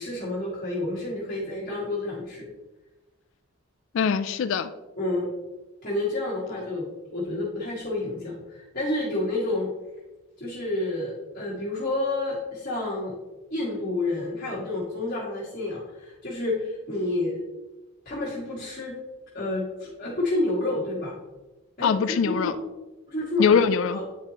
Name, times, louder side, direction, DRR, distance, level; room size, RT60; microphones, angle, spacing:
voice 1, 0.0-2.5 5.0-5.3 5.8-9.7 10.4-13.1 13.5-17.4 18.0-19.0 19.3-21.1 21.8-21.9 22.3-22.6 23.1-23.6 23.9-24.0, left 2 dB, 40° left, -9 dB, 1.6 m, -29 dB
voice 2, 3.9-4.7 21.8-22.5 23.4-24.0, left 6 dB, 60° left, 11 dB, 0.3 m, -22 dB
9.4 x 4.6 x 2.9 m, 1.1 s
head